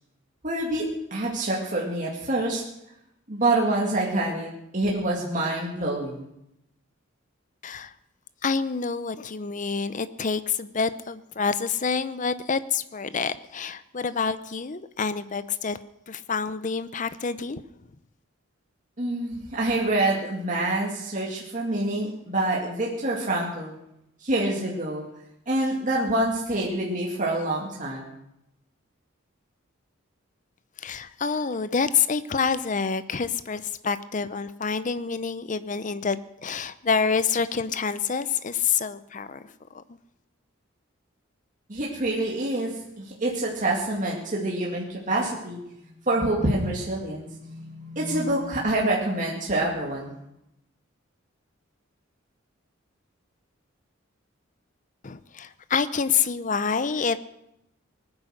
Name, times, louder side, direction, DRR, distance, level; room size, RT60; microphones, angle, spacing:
voice 1, 0.4-2.6 3.3-6.3 19.0-23.7 24.2-25.0 25.5-28.1 41.7-45.6 45.9-50.2, right 1 dB, 40° right, -3 dB, 2.2 m, -26 dB
voice 2, 8.4-15.8 16.1-17.6 30.8-40.0 55.0-57.2, left 5 dB, 40° left, 13 dB, 0.7 m, -27 dB
20.0 x 9.7 x 6.4 m, 0.83 s
head